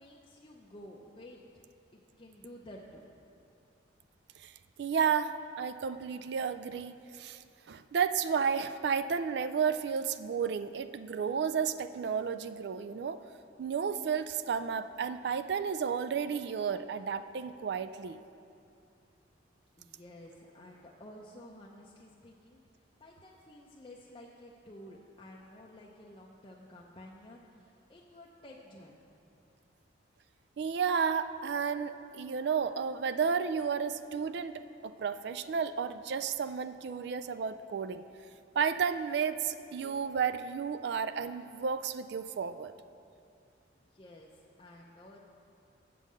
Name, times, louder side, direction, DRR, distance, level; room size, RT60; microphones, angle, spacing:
voice 1, 0.0-1.6 1.9-3.0 19.8-22.6 23.0-29.1 43.7-45.2, left 1 dB, 25° left, -2 dB, 0.5 m, -52 dB
voice 2, 4.8-7.4 7.7-13.2 13.6-18.2 30.6-38.0 38.5-42.7, right 6 dB, 60° right, 12 dB, 0.3 m, -32 dB
7.6 x 5.4 x 7.4 m, 2.5 s
head